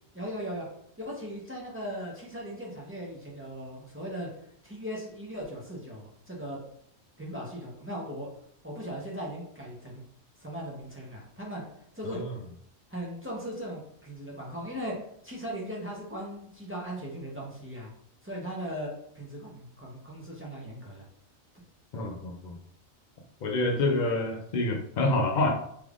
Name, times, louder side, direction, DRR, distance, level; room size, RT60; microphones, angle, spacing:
voice 1, 0.1-0.7 1.0-4.3 4.6-6.6 7.2-8.3 8.6-10.0 10.4-11.6 11.9-12.2 12.9-15.0 15.2-17.9 18.2-21.0 21.9-22.1, equal, 15° right, -4 dB, 0.4 m, -38 dB
voice 2, 21.9-22.5 23.4-25.5, left 2 dB, 80° left, 2 dB, 0.4 m, -27 dB
3.4 x 3.2 x 2.4 m, 0.68 s
omnidirectional pair, 1.4 m